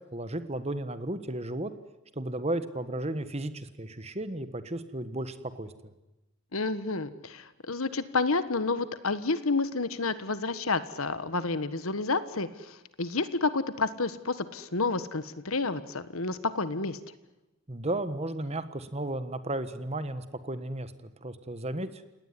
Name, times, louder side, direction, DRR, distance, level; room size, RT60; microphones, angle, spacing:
voice 1, 0.1-1.7 2.1-5.7 17.7-22.0, right 1 dB, 30° right, 11 dB, 1.4 m, -34 dB
voice 2, 6.5-17.0, left 3 dB, 70° left, 13 dB, 1.5 m, -30 dB
29.0 x 18.5 x 9.8 m, 1.0 s
head